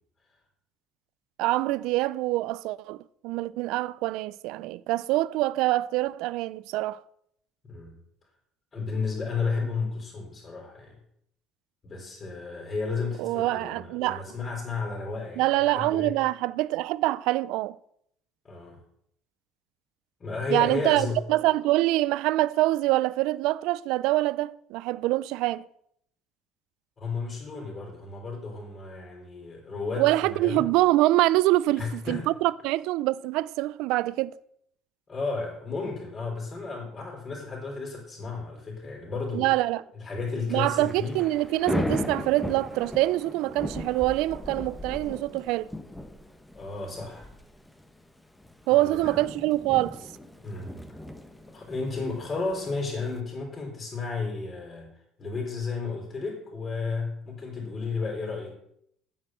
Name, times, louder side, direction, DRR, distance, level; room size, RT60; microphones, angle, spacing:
voice 1, 1.4-3.0 3.2-7.0 13.2-14.2 15.4-17.8 20.5-25.7 30.0-34.4 39.3-39.8 40.5-45.7 48.7-50.0, right 17 dB, 75° right, 0.4 m, -25 dB
voice 2, 7.6-8.0 8.7-11.0 11.8-16.1 18.4-18.8 20.2-21.2 27.0-30.7 31.8-32.3 35.1-39.5 39.9-41.2 46.5-47.3 48.7-49.2 50.4-50.7 51.5-54.9 55.2-58.5, left 4 dB, 30° left, 4.2 m, -33 dB
Thunder / Rain, 40.5-53.2, left 1 dB, 5° left, 1.3 m, -37 dB
8.8 x 7.5 x 7.7 m
cardioid pair, 110°, 0 cm